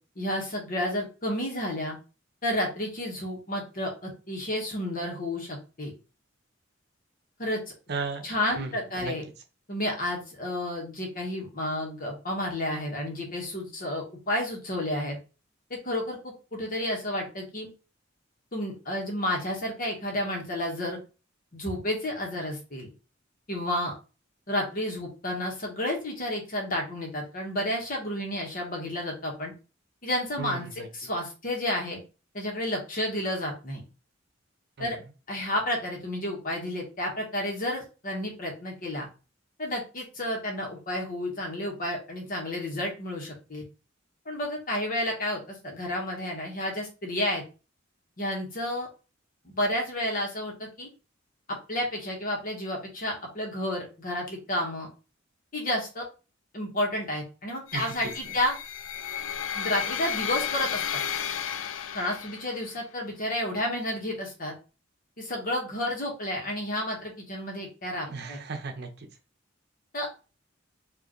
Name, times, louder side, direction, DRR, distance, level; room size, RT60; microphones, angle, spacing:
voice 1, 0.1-2.0 2.4-5.9 7.4-7.6 8.2-9.2 9.7-15.2 15.7-17.7 18.5-21.0 21.5-22.9 23.5-23.9 24.5-29.5 30.0-32.0 32.3-33.8 34.8-35.0 35.3-39.1 39.6-43.6 44.2-47.4 48.2-48.9 49.4-50.9 51.7-54.9 55.5-56.0 56.5-58.5 59.5-61.0 61.9-64.5 65.2-68.4 69.9-70.2, left 1 dB, 45° left, 1 dB, 1.5 m, -31 dB
voice 2, 7.9-8.3 8.6-8.7 9.0-9.1 30.4-30.9 34.8-34.9 57.7-58.1 68.1-69.1, right 4 dB, 60° right, 6 dB, 0.8 m, -35 dB
sound 1, 57.7-62.7, left 8 dB, 80° left, 0.4 m, -33 dB
4.8 x 2.8 x 3.1 m, 0.33 s
head